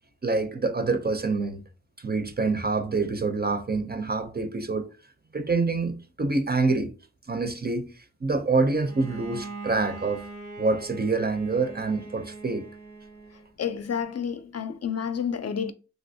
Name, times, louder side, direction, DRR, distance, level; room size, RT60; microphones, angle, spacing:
voice 1, 0.2-1.6 2.0-4.9 5.3-6.9 7.3-10.2 10.6-12.7, right 3 dB, 35° right, 0.4 m, -26 dB
Bowed string instrument, 8.8-13.5, right 3 dB, 85° right, 0.8 m, -41 dB
voice 2, 13.6-15.7, left 7 dB, 60° left, 0.4 m, -30 dB
3.2 x 2.7 x 2.6 m
wide cardioid pair, 50°, 29 cm